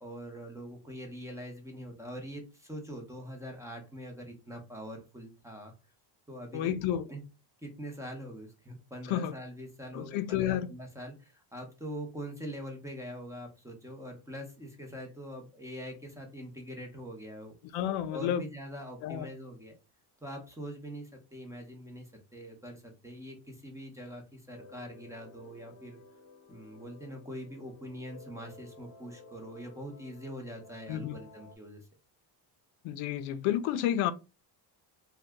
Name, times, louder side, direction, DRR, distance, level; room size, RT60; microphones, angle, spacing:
voice 1, 0.0-5.7 6.3-6.7 7.1-7.2 7.6-17.5 18.1-19.7 20.2-26.0 26.5-31.8, equal, 5° right, 0.7 m, -43 dB
voice 2, 6.5-7.1 9.1-9.3 9.9-10.7 17.7-18.4 19.0-19.3 30.9-31.2 32.8-34.1, left 11 dB, 80° left, 0.5 m, -30 dB
sound 1, 24.5-31.6, left 3 dB, 45° left, 1.0 m, -54 dB
2.7 x 2.3 x 3.4 m
cardioid pair, 125°, 50 cm